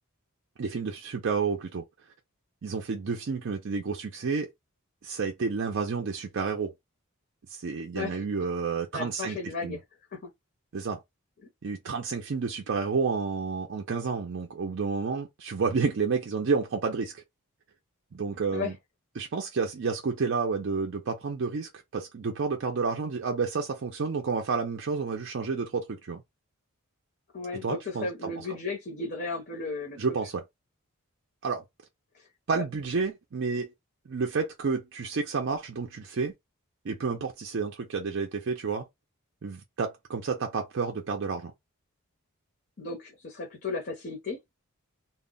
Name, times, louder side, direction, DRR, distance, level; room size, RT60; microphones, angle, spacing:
voice 1, 0.6-1.8 2.6-4.5 5.0-6.7 7.5-9.8 10.7-11.0 11.6-17.2 18.1-18.7 19.2-26.2 27.5-28.5 30.0-30.4 31.4-31.6 32.5-33.7 34.1-36.3 36.8-38.9 39.4-41.5, right 5 dB, 55° right, 0.4 m, -30 dB
voice 2, 8.9-9.8 10.1-10.3 18.5-18.7 27.3-30.0 32.1-32.2 32.5-32.6 42.8-44.4, left 3 dB, 45° left, 0.6 m, -35 dB
2.1 x 2.0 x 3.7 m
head